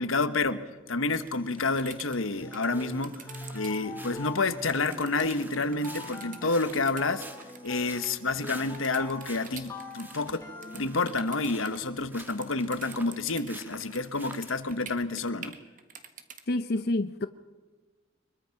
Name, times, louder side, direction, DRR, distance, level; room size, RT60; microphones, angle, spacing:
voice 1, 0.0-3.2 3.5-7.2 7.6-10.4 10.7-15.6, left 3 dB, 90° left, 1.2 m, -29 dB
sound 1, 1.1-14.8, right 2 dB, 10° right, 1.5 m, -50 dB
sound 2, 1.1-3.8 4.7-13.5 13.8-16.4, right 7 dB, 40° right, 1.5 m, -46 dB
sound 3, 2.4-11.6, left 2 dB, 15° left, 2.2 m, -44 dB
voice 2, 16.5-17.3, left 2 dB, 50° left, 0.6 m, -28 dB
24.0 x 22.0 x 5.9 m
head